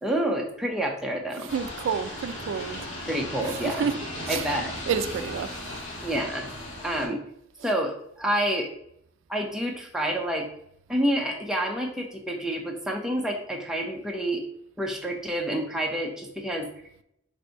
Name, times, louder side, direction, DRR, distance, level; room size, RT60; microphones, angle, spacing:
voice 1, 0.0-1.5 3.1-3.9 4.3-4.7 6.0-6.5 6.8-7.2 7.6-8.7 9.3-10.5 10.9-14.4 14.8-16.7, right 1 dB, 5° right, 0.6 m, -28 dB
voice 2, 1.3-2.8 3.1-4.6 4.9-5.5 7.6-7.7, right 6 dB, 80° right, 0.3 m, -30 dB
sound 1, 1.5-7.1, left 1 dB, 85° left, 1.5 m, -36 dB
4.1 x 2.6 x 4.5 m
head